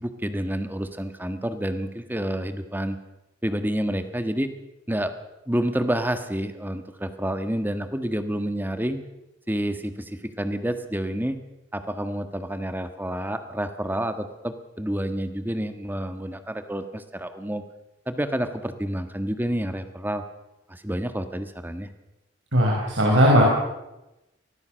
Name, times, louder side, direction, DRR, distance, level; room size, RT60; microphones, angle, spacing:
voice 1, 0.0-3.0 3.4-4.5 4.9-5.1 5.5-9.0 9.5-11.4 11.7-17.6 18.1-20.2 20.7-21.9, right 1 dB, 10° right, 8 dB, 1.5 m, -29 dB
voice 2, 22.5-23.4, equal, 90° right, -2 dB, 5.2 m, -18 dB
24.5 x 18.0 x 6.4 m, 0.95 s
head